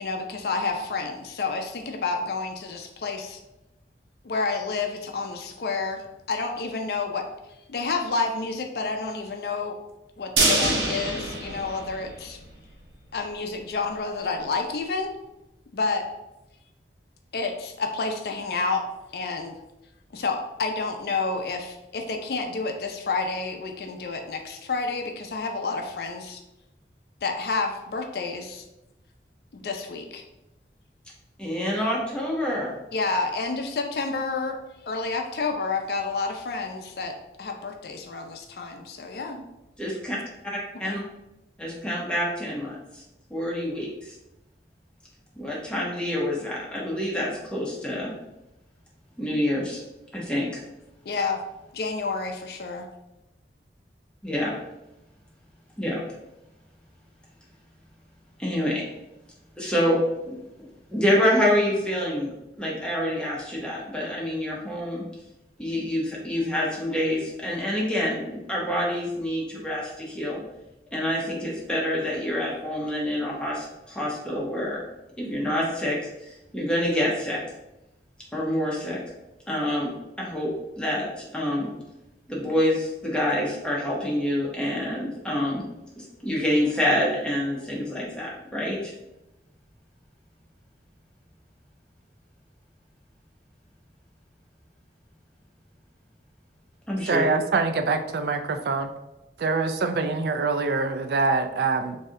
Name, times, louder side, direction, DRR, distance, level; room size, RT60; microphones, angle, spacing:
voice 1, 0.0-3.4 4.2-6.0 6.3-7.3 7.7-9.8 10.2-12.4 13.1-15.1 15.7-16.1 17.3-18.8 19.1-19.6 20.1-26.4 27.2-28.6 29.5-30.2 32.9-34.6 34.9-39.4 40.8-41.0 51.1-51.4 51.7-52.9, left 4 dB, 60° left, 4 dB, 0.4 m, -29 dB
sound 1, 10.4-12.5 12.8-12.9 13.3-13.4, right 2 dB, 90° right, 0.7 m, -25 dB
voice 2, 31.4-32.7 39.8-40.2 40.4-41.0 41.6-43.0 43.3-44.1 45.4-48.1 49.2-49.8 50.1-50.6 54.2-54.5 55.8-56.0 58.4-58.8 59.6-60.0 60.3-60.4 60.9-62.3 62.6-65.0 65.6-70.4 70.9-74.8 75.2-77.4 78.3-79.0 79.5-81.7 82.3-85.6 86.0-88.9 96.9-97.3, left 1 dB, 5° left, -5 dB, 0.8 m, -27 dB
voice 3, 97.1-98.9 99.4-102.0, right 4 dB, 60° right, 8 dB, 0.3 m, -24 dB
3.2 x 2.7 x 3.6 m, 0.94 s
head